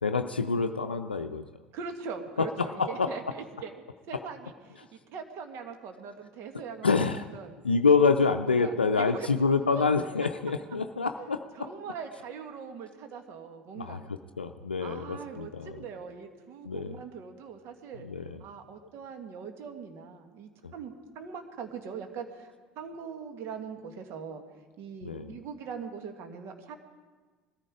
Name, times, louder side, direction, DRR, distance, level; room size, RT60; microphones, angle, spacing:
voice 1, 0.0-1.5 2.4-3.1 6.8-7.3 7.6-11.4 13.8-14.0 14.4-15.8 16.6-17.0 18.0-18.4 20.6-20.7 25.0-25.4, left 4 dB, 90° left, 7 dB, 0.5 m, -26 dB
voice 2, 1.7-7.1 7.3-7.5 8.5-9.3 11.2-11.3 11.6-14.0 14.8-18.1 18.4-24.4 24.8-26.8, right 6 dB, 55° right, 6 dB, 1.9 m, -41 dB
20.5 x 14.0 x 4.9 m, 1.4 s
figure-of-eight pair, 65°, 5 cm